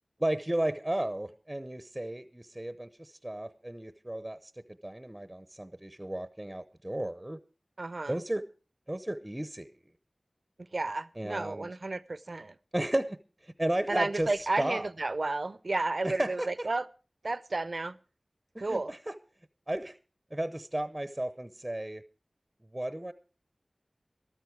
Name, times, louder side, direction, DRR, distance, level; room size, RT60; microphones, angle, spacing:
voice 1, 0.2-4.5 4.8-7.4 8.1-8.4 8.9-9.7 11.2-11.7 12.7-14.9 16.0-16.7 18.5-19.2 19.7-19.9 20.3-22.0 22.7-23.1, right 1 dB, 20° right, 0.7 m, -34 dB
voice 2, 7.8-8.2 10.6-12.6 13.9-16.9 17.2-18.0 18.6-18.9, right 2 dB, 65° right, 0.6 m, -32 dB
13.5 x 13.0 x 4.7 m
wide cardioid pair, 40°, 0 cm